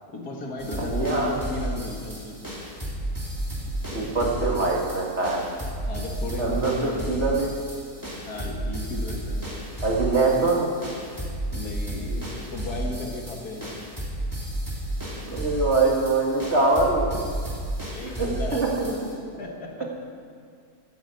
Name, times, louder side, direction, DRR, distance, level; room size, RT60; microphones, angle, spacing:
voice 1, 0.1-2.5 4.0-4.1 5.8-7.5 8.3-9.6 11.5-13.7 17.9-18.7 19.4-19.9, left 2 dB, 80° left, 1 dB, 2.4 m, -35 dB
sound 1, 0.6-19.1, right 1 dB, 10° right, 2.9 m, -33 dB
voice 2, 0.7-1.4 3.9-5.4 6.4-7.5 9.8-10.7 15.1-17.1 18.0-18.9 19.3-19.4, right 3 dB, 45° right, -2 dB, 2.7 m, -24 dB
14.0 x 9.9 x 8.0 m, 2.1 s
omnidirectional pair, 1.6 m